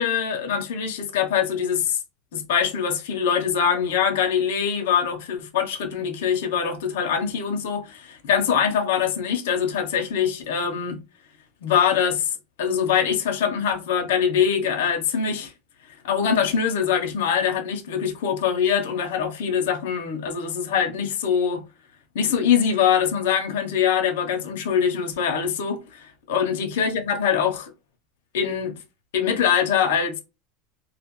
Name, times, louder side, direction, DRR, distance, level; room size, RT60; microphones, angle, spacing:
voice 1, 0.0-2.0 2.3-11.0 11.6-15.5 16.0-21.6 22.1-27.7 28.3-28.7 29.1-30.2, left 7 dB, 90° left, 0.7 m, -23 dB
2.6 x 2.4 x 3.0 m
supercardioid pair, 150°, 0 cm